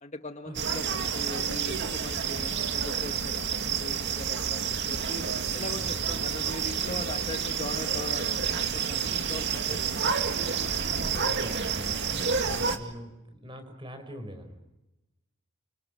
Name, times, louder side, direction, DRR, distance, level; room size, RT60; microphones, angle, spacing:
voice 1, 0.0-5.3 5.5-10.5, left 2 dB, 35° left, 7 dB, 1.5 m, -40 dB
sound 1, 0.5-12.8, right 6 dB, 55° right, 2.4 m, -29 dB
voice 2, 11.0-14.6, equal, 25° right, 8 dB, 4.9 m, -43 dB
29.0 x 26.5 x 6.5 m, 0.96 s
head